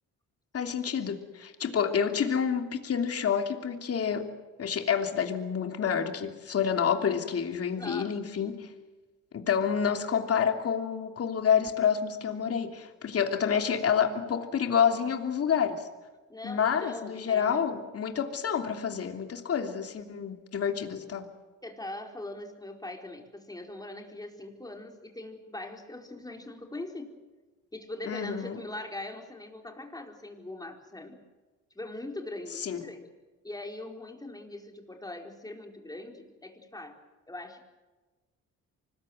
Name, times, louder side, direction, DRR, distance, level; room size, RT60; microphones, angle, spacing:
voice 1, 0.5-4.3 4.6-8.7 9.3-15.9 16.4-21.3 28.1-28.6 32.6-32.8, left 7 dB, 50° left, 5 dB, 3.1 m, -28 dB
voice 2, 7.8-8.6 16.3-17.6 21.6-27.1 27.7-31.2 31.7-33.1 33.4-37.0 37.3-37.6, left 2 dB, 10° left, 3 dB, 4.4 m, -41 dB
25.0 x 20.5 x 7.9 m, 1.2 s
cardioid pair, 90°, 30 cm